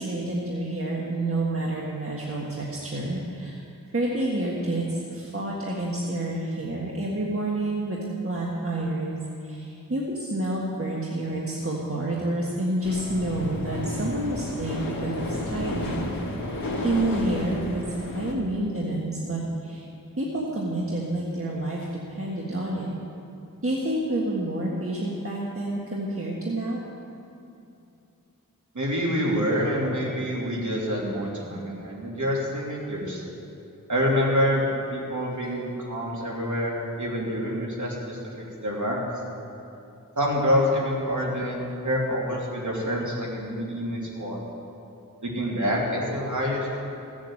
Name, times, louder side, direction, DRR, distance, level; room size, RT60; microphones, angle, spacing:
voice 1, 0.0-3.6 3.9-16.1 16.5-16.6 16.8-19.9 20.2-22.9 23.6-26.8, right 1 dB, 40° right, -4 dB, 1.6 m, -29 dB
sound 1, 12.8-18.3, left 1 dB, 80° left, 1.7 m, -32 dB
voice 2, 28.7-33.2 33.9-34.6 34.9-38.2 38.6-39.0 40.1-41.6 41.8-44.4 45.2-46.8, equal, 60° right, -4 dB, 3.1 m, -27 dB
16.0 x 7.7 x 7.7 m, 2.7 s
wide cardioid pair, 65°, 34 cm